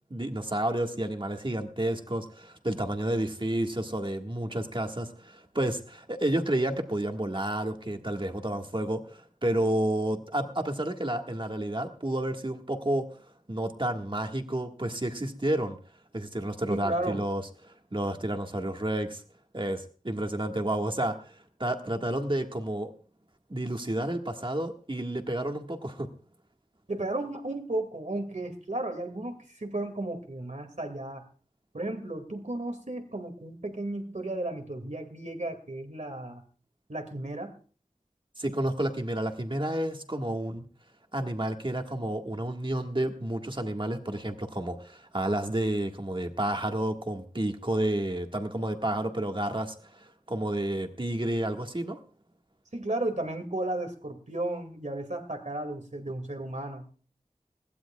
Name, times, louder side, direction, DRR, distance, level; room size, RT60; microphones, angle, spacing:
voice 1, 0.1-15.8 16.1-19.2 19.5-22.9 23.5-26.1 38.4-40.6 41.1-52.0, right 1 dB, 40° right, 4 dB, 1.7 m, -30 dB
voice 2, 16.7-17.2 26.9-31.2 31.7-36.4 36.9-37.5 52.7-56.9, right 2 dB, 65° right, 7 dB, 2.3 m, -34 dB
21.0 x 15.5 x 2.3 m, 0.39 s
wide cardioid pair, 45°, 14 cm